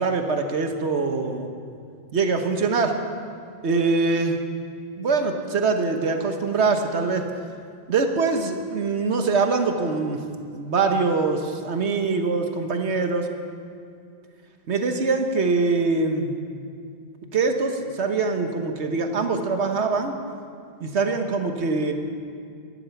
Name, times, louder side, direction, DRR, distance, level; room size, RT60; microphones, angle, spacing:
voice 1, 0.0-1.5 2.1-2.9 3.6-4.4 5.0-7.2 7.9-10.2 10.5-13.3 14.7-16.3 17.3-20.1 20.8-21.9, right 4 dB, 80° right, 5 dB, 1.4 m, -23 dB
14.5 x 11.5 x 7.0 m, 2.3 s
omnidirectional pair, 1.1 m